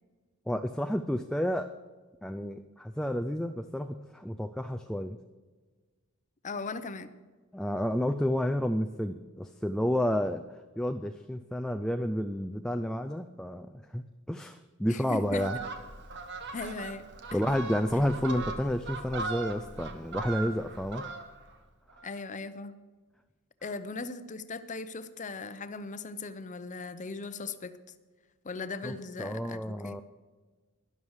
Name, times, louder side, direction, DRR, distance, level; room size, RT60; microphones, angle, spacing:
voice 1, 0.5-1.8 2.2-5.2 7.5-10.5 10.8-15.6 17.3-21.0 28.8-30.0, equal, 5° left, 7 dB, 0.4 m, -31 dB
voice 2, 6.4-7.1 14.9-15.5 16.5-17.0 17.3-17.4 22.0-22.7 23.6-27.8 28.4-30.0, left 3 dB, 35° left, 11 dB, 0.7 m, -38 dB
Fowl, 15.2-21.6 21.9-22.1, right 3 dB, 50° right, 1.2 m, -39 dB
12.5 x 11.0 x 4.9 m, 1.4 s
head